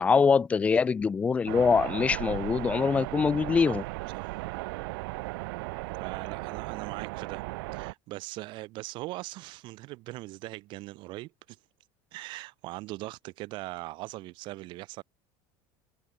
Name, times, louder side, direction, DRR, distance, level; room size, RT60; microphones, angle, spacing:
voice 1, 0.0-3.8, left 5 dB, 10° left, 0.3 m, -24 dB
sound 1, 1.5-7.9, right 24 dB, 80° right, 0.5 m, -36 dB
voice 2, 6.0-7.4 7.7-11.6 12.1-15.0, right 20 dB, 45° right, 1.8 m, -40 dB
cardioid pair, 175°, 12 cm